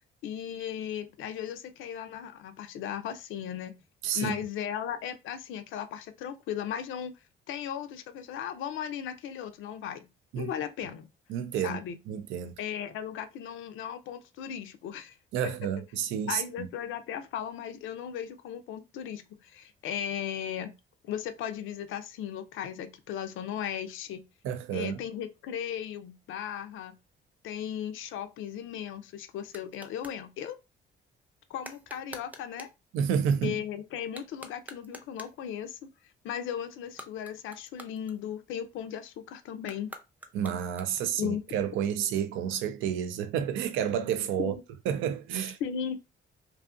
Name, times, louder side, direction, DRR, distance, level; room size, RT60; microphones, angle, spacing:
voice 1, 0.2-3.7 4.1-7.1 7.5-10.1 10.4-11.1 11.6-12.0 12.6-15.2 15.4-15.7 16.3-20.7 21.0-24.2 24.7-27.0 27.4-30.6 31.5-32.7 33.4-35.8 36.2-39.9 41.2-41.4 44.4-44.5 45.6-46.0, left 9 dB, 85° left, 0.5 m, -36 dB
voice 2, 4.0-4.3 10.3-10.5 11.3-11.8 12.1-12.5 15.3-16.7 24.4-25.0 32.9-33.5 40.3-44.5 44.9-45.6, right 8 dB, 90° right, 0.4 m, -30 dB
sound 1, 28.6-30.2 31.6-32.8 34.0-35.5 36.8-38.6 39.6-41.2, right 1 dB, 10° right, 0.5 m, -48 dB
2.6 x 2.4 x 2.5 m
cardioid pair, 90°, 20 cm